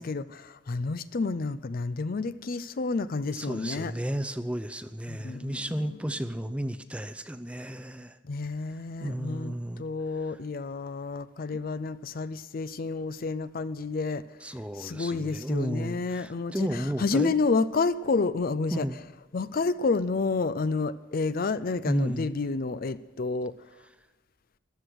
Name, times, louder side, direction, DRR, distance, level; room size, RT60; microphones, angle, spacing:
voice 1, 0.0-3.9 5.1-6.0 8.2-14.2 14.8-18.9 19.3-23.5, left 4 dB, 45° left, 0.5 m, -30 dB
voice 2, 3.3-8.2 9.0-9.8 14.4-17.4 18.7-19.0 21.9-22.3, equal, 5° right, 0.5 m, -33 dB
14.5 x 11.5 x 6.3 m
head